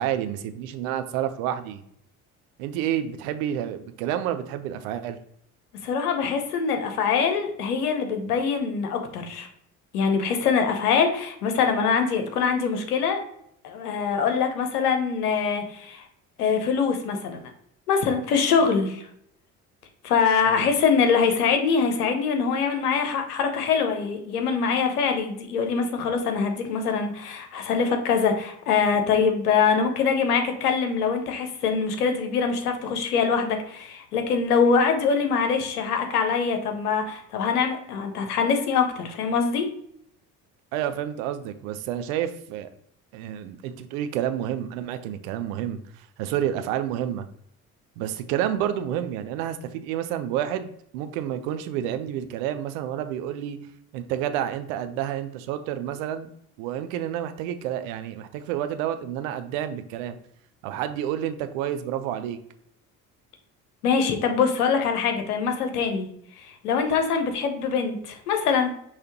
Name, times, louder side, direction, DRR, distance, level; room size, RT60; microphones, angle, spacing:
voice 1, 0.0-1.8 2.6-5.2 20.4-20.7 40.7-42.7 43.1-47.3 48.0-53.6 53.9-56.3 56.6-60.2 60.6-62.4, right 10 dB, 65° right, 10 dB, 0.6 m, -29 dB
voice 2, 5.8-9.5 9.9-13.2 13.6-16.0 16.4-17.5 17.9-19.0 20.0-39.7 63.8-66.1 66.4-68.7, left 6 dB, 75° left, 6 dB, 0.8 m, -23 dB
5.5 x 3.2 x 2.9 m, 0.69 s
figure-of-eight pair, 55°, 45 cm